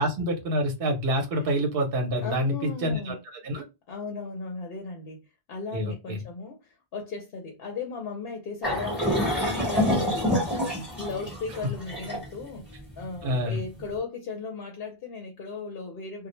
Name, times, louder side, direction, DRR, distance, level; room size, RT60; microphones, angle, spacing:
voice 1, 0.0-3.6 5.7-6.2 13.2-13.6, equal, 65° right, 0.9 m, -27 dB
voice 2, 2.2-3.2 3.9-5.2 5.5-16.3, left 4 dB, 70° left, 0.8 m, -36 dB
sound 1, 8.6-13.8, equal, ahead, 0.9 m, -27 dB
2.1 x 2.0 x 3.0 m
omnidirectional pair, 1.1 m